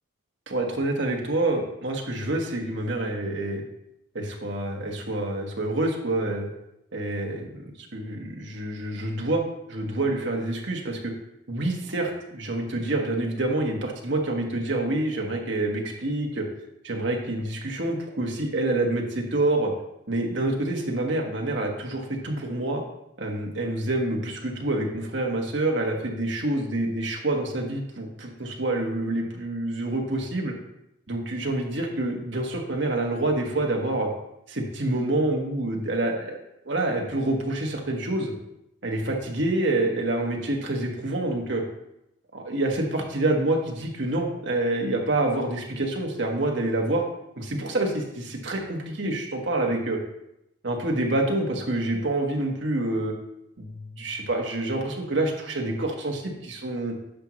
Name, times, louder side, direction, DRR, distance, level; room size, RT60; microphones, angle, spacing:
voice 1, 0.5-3.6 4.1-6.5 6.9-11.1 11.5-16.5 16.8-19.7 20.1-22.8 23.2-30.5 31.1-34.1 34.5-36.4 36.6-38.3 38.8-41.6 42.3-47.0 47.4-50.0 50.6-53.1 53.6-56.9, right 2 dB, 60° right, 1 dB, 1.3 m, -27 dB
10.0 x 6.1 x 3.1 m, 0.83 s
head